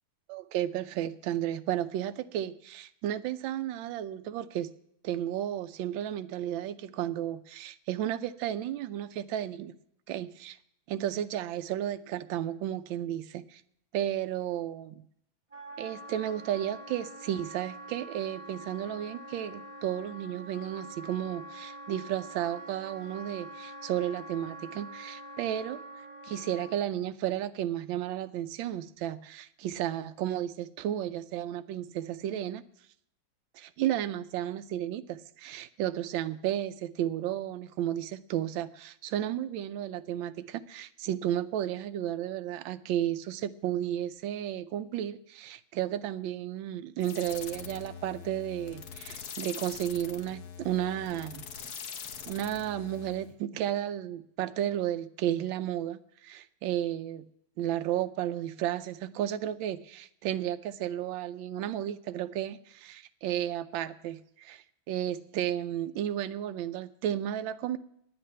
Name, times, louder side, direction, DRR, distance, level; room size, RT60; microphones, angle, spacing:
voice 1, 0.3-4.7 5.0-9.7 10.1-10.6 10.9-13.6 13.9-15.0 15.8-25.8 26.2-32.6 33.5-51.4 52.3-57.3 57.6-67.8, right 11 dB, 75° right, 10 dB, 1.3 m, -33 dB
Wind instrument woodwind instrument, 15.5-26.8, right 1 dB, 15° right, 1.4 m, -45 dB
sound 1, 47.0-53.3, left 7 dB, 55° left, 1.2 m, -43 dB
9.7 x 7.8 x 9.4 m, 0.72 s
omnidirectional pair, 2.3 m